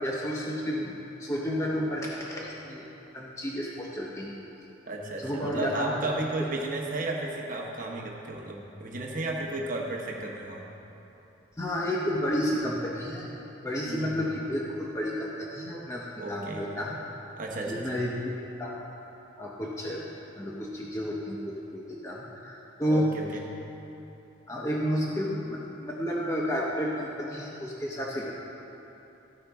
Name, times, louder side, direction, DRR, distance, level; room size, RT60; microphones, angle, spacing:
voice 1, 0.0-0.9 1.2-2.9 3.1-4.3 5.2-6.1 6.4-6.5 11.6-13.3 13.6-17.0 17.7-18.8 19.4-20.0 20.4-23.1 24.5-28.3, equal, 15° left, -4 dB, 0.6 m, -31 dB
voice 2, 4.9-10.6 13.8-14.1 16.2-16.7 17.4-18.0 22.8-23.5, right 2 dB, 40° right, -1 dB, 0.9 m, -33 dB
14.0 x 5.1 x 3.5 m, 3.0 s
head